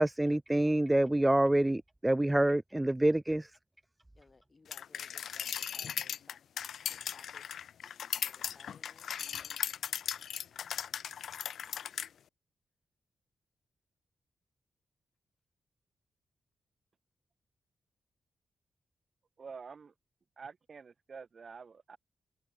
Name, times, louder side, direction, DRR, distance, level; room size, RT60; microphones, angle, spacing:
voice 1, 0.0-3.6, right 1 dB, 10° right, 0.5 m, -27 dB
voice 2, 4.1-6.4 6.8-7.5 8.2-9.8, left 4 dB, 35° left, 5.6 m, -62 dB
sound 1, 4.7-12.1, left 8 dB, 85° left, 0.5 m, -38 dB
voice 3, 19.4-19.9 20.4-22.0, right 5 dB, 50° right, 4.1 m, -48 dB
wide cardioid pair, 100°, 0 cm